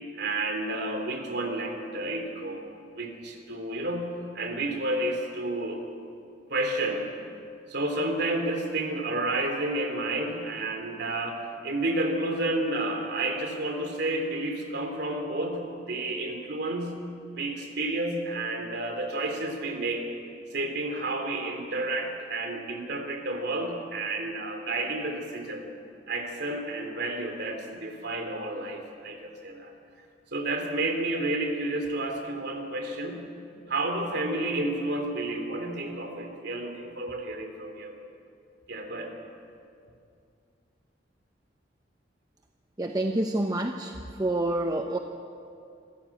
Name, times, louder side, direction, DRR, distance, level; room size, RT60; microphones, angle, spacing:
voice 1, 0.1-2.6 2.9-5.8 6.5-7.1 7.7-17.0 17.3-20.1 20.5-25.7 26.1-29.7 30.3-33.2 33.7-37.9 38.7-39.1, right 2 dB, 65° right, 5 dB, 3.2 m, -31 dB
voice 2, 42.8-43.9 44.2-45.0, right 1 dB, 20° right, 4 dB, 0.9 m, -27 dB
25.5 x 15.0 x 8.6 m, 2.5 s
head